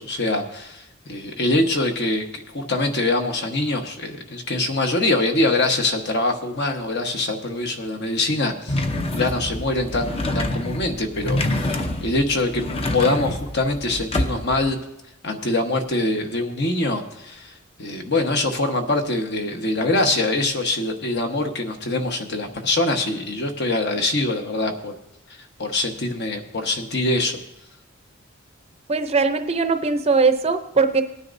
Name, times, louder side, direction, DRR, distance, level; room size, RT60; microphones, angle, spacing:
voice 1, 0.0-8.8 9.1-12.6 12.9-14.8 15.2-17.5 17.8-24.9 25.6-27.4, left 2 dB, 50° left, 4 dB, 1.3 m, -24 dB
sound 1, 8.7-14.7, left 1 dB, 30° left, 0.7 m, -27 dB
voice 2, 28.9-31.0, right 4 dB, 30° right, 8 dB, 0.6 m, -20 dB
19.5 x 9.7 x 2.7 m, 0.85 s
head